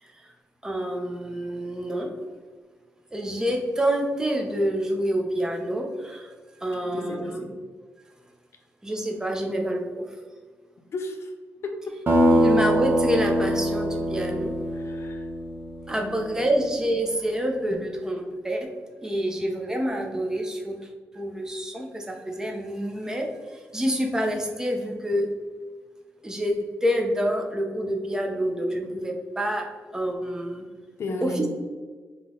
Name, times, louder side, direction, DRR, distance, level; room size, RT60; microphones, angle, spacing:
voice 1, 0.0-0.3 0.6-2.1 3.1-6.3 6.6-7.4 8.8-10.1 12.3-14.5 15.9-18.7 19.0-25.3 26.2-29.7 29.9-30.7 31.2-31.5, equal, 10° right, 2 dB, 0.6 m, -27 dB
voice 2, 6.9-7.6 10.9-11.3 11.6-12.2 14.7-15.3 16.0-16.2 31.0-31.5, left 2 dB, 60° left, 3 dB, 0.6 m, -34 dB
sound 1, 12.1-16.3, equal, 45° right, 0.8 m, -23 dB
3.7 x 3.0 x 3.7 m, 1.5 s
cardioid pair, 110°, 5 cm